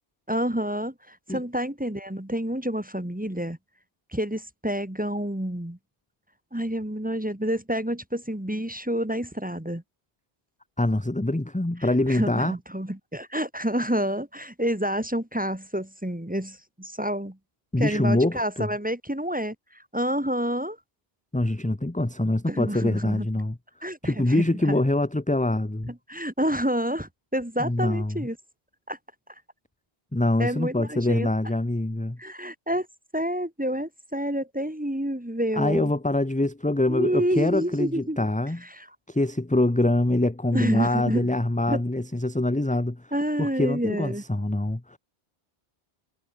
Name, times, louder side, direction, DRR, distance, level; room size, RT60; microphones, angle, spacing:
voice 1, 0.3-3.6 4.1-5.8 6.5-9.8 11.8-17.4 17.8-19.5 19.9-20.8 22.5-23.3 23.8-24.8 25.9-28.4 28.9-29.0 30.4-31.3 32.2-32.9 33.1-35.9 36.9-38.2 38.6-38.9 40.5-41.3 41.7-41.8 43.1-44.2, equal, 10° right, 1.5 m, -28 dB
voice 2, 10.8-12.6 17.7-18.7 21.3-23.6 24.0-25.9 27.6-28.3 30.1-32.2 35.6-38.6 39.1-43.0 43.4-45.0, left 1 dB, 10° left, 0.8 m, -24 dB
omnidirectional pair, 1.0 m